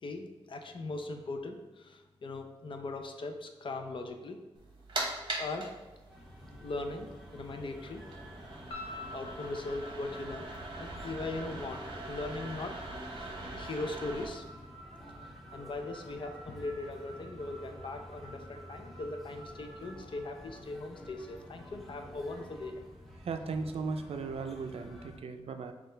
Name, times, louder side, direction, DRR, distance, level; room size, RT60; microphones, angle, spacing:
voice 1, 0.0-4.4 5.4-5.7 6.6-8.0 8.7-8.9 9.1-10.5 10.8-12.8 13.0-14.4 15.5-22.8, left 2 dB, 55° left, 5 dB, 0.5 m, -40 dB
sound 1, 4.6-14.3, right 2 dB, 50° right, 0.9 m, -42 dB
sound 2, 6.1-25.2, equal, ahead, 0.6 m, -51 dB
sound 3, 8.7-21.0, left 1 dB, 75° left, 1.1 m, -51 dB
voice 2, 23.2-25.7, right 4 dB, 70° right, 7 dB, 0.4 m, -37 dB
6.3 x 2.4 x 3.2 m, 1.2 s
wide cardioid pair, 115°, 10 cm